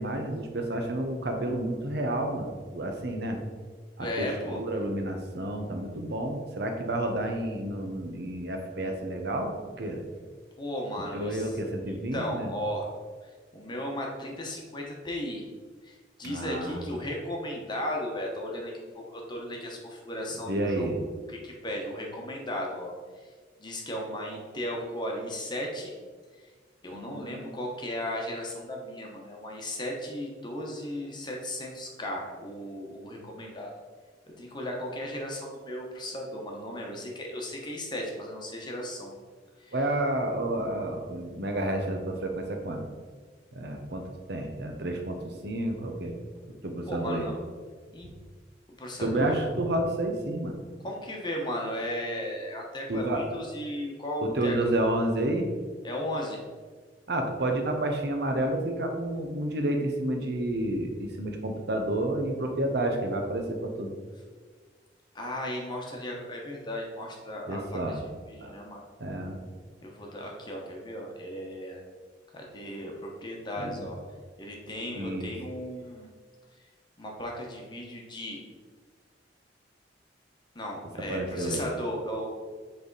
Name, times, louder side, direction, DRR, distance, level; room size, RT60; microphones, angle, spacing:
voice 1, 0.0-3.4 4.0-10.0 11.1-12.5 16.2-16.8 20.5-21.0 26.9-27.5 39.7-42.8 43.5-46.2 46.4-47.3 49.0-50.6 52.9-53.2 54.2-55.5 57.1-63.9 67.5-68.0 68.4-68.5 69.0-69.4 73.6-73.9 74.9-75.3 81.1-81.7, right 1 dB, 65° right, 3 dB, 0.8 m, -30 dB
voice 2, 4.0-4.6 10.6-11.5 11.8-12.9 13.5-15.5 15.8-20.9 21.3-22.9 23.6-25.9 26.8-33.7 34.4-39.1 39.6-39.7 46.9-47.4 47.9-48.1 48.8-49.3 50.8-54.5 55.8-56.4 65.1-67.8 68.3-68.8 69.8-71.8 72.3-74.0 74.4-76.1 77.0-78.4 80.5-82.3, left 1 dB, 25° left, -1 dB, 1.0 m, -35 dB
7.5 x 3.5 x 4.0 m, 1.5 s
head